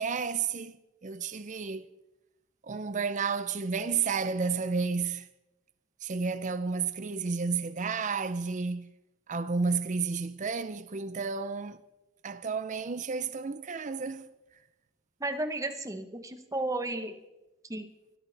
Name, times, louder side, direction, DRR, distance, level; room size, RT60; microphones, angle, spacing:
voice 1, 0.0-1.9 2.6-5.3 6.0-8.9 9.3-11.8 12.2-14.3, right 5 dB, 35° right, 0.5 m, -31 dB
voice 2, 15.2-17.1 17.7-17.9, right 2 dB, 15° right, 0.9 m, -33 dB
23.5 x 13.0 x 3.4 m
head